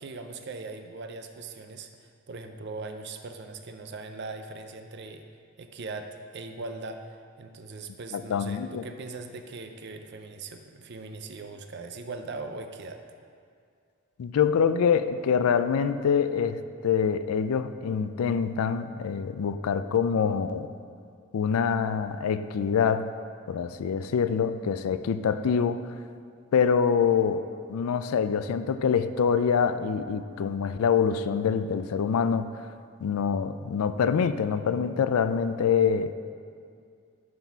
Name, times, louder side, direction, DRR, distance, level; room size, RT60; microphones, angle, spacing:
voice 1, 0.0-5.3 5.6-13.0, right 3 dB, 50° right, 6 dB, 0.5 m, -40 dB
voice 2, 8.1-8.8 14.2-20.7 21.3-23.1 23.5-25.8 26.5-27.4 27.7-32.5 33.0-36.1, left 6 dB, 85° left, 12 dB, 0.4 m, -25 dB
11.0 x 4.0 x 4.6 m, 2.3 s
head